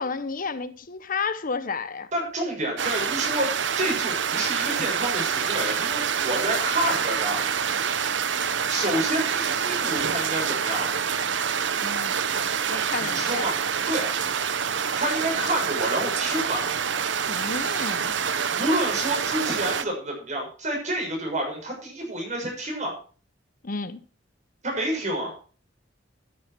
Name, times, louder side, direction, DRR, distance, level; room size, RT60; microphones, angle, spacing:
voice 1, 0.0-2.1 11.8-12.1 12.7-13.5 17.3-18.1 23.6-24.0, left 4 dB, 50° left, 0.9 m, -31 dB
voice 2, 2.1-3.5 3.8-7.4 8.7-10.9 13.0-13.6 13.9-14.1 15.0-16.7 18.5-23.0 24.6-25.3, right 1 dB, 40° right, 6.8 m, -28 dB
sound 1, 2.8-19.8, right 7 dB, 70° right, 0.8 m, -26 dB
12.5 x 10.5 x 4.5 m
head